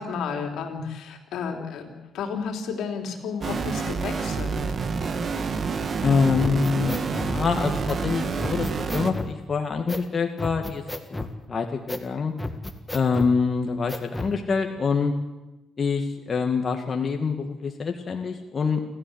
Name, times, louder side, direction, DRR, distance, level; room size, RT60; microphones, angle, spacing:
voice 1, 0.0-4.7, left 6 dB, 80° left, 3 dB, 3.7 m, -32 dB
sound 1, 3.4-9.1, right 5 dB, 45° right, 2.1 m, -28 dB
voice 2, 6.0-10.8 11.1-12.3 12.9-15.1 15.8-18.8, left 5 dB, 40° left, 3 dB, 2.1 m, -25 dB
sound 2, 6.4-7.3 7.9-8.0 8.4-9.3 9.9-10.1 10.4-11.3 11.9-12.1 12.4-13.3 13.9-14.4, left 2 dB, 10° left, 2.0 m, -33 dB
29.0 x 13.5 x 8.1 m, 1.0 s
cardioid pair, 90°, 0 cm